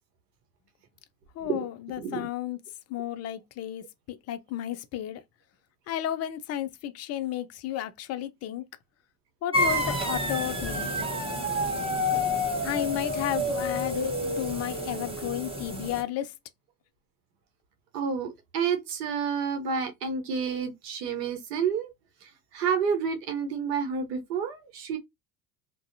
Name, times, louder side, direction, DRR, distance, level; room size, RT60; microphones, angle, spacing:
voice 1, 1.4-2.6 2.9-5.2 5.9-8.6 9.4-11.0 12.6-16.3, left 12 dB, 35° left, 0.4 m, -33 dB
sound 1, 9.5-16.0, left 1 dB, 10° right, 0.9 m, -29 dB
voice 2, 17.9-21.9 22.5-25.0, right 6 dB, 75° right, 0.9 m, -29 dB
2.5 x 2.1 x 2.6 m
hypercardioid pair, 70°, 49 cm